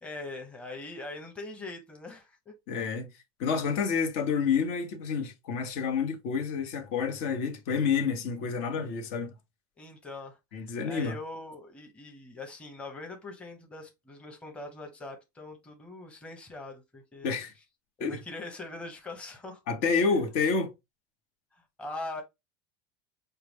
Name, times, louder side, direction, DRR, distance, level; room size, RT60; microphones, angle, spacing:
voice 1, 0.0-2.5 9.8-17.3 18.0-19.6 21.5-22.2, left 2 dB, 10° left, 0.9 m, -42 dB
voice 2, 2.7-3.1 3.4-9.3 10.5-11.2 17.2-17.5 18.0-18.2 19.7-20.7, left 5 dB, 65° left, 1.0 m, -29 dB
4.7 x 2.2 x 3.4 m
supercardioid pair, 140°, 11 cm